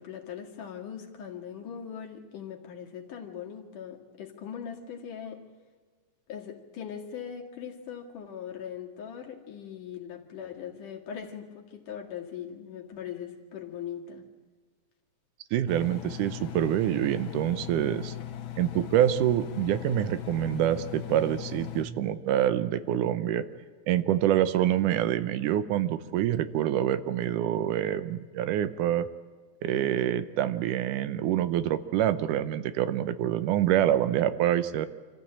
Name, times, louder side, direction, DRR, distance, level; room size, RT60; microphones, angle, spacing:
voice 1, 0.0-5.5 6.3-14.2, left 8 dB, 85° left, 1 dB, 3.7 m, -40 dB
voice 2, 15.5-18.1 18.6-23.4 23.9-29.1 29.6-34.9, right 11 dB, 85° right, 12 dB, 2.4 m, -26 dB
Engine, 15.7-21.8, left 10 dB, 60° left, 1.3 m, -39 dB
26.0 x 15.0 x 8.8 m, 1.5 s
omnidirectional pair, 3.5 m